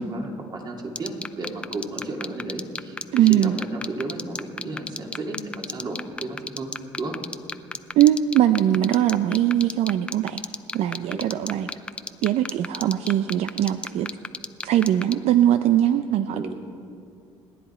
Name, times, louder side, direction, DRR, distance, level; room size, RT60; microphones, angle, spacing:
voice 1, 0.0-7.2 11.1-11.2 16.3-16.5, right 2 dB, 40° right, 1 dB, 2.5 m, -33 dB
sound 1, 0.9-15.1, left 2 dB, 10° left, 0.5 m, -30 dB
voice 2, 3.1-3.6 8.0-10.4 10.7-11.7 12.2-14.1 14.6-16.5, right 11 dB, 70° right, 10 dB, 0.6 m, -21 dB
29.0 x 10.5 x 4.4 m, 2.5 s
cardioid pair, 125°, 11 cm